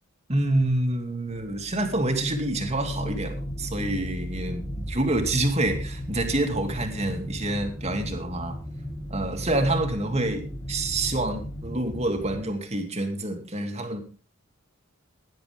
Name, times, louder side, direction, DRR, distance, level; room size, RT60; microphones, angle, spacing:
voice 1, 0.3-8.6 9.1-14.0, right 1 dB, 30° right, 2.7 m, -27 dB
sound 1, 1.3-12.4, equal, 15° left, 2.5 m, -35 dB
17.5 x 11.0 x 3.6 m
head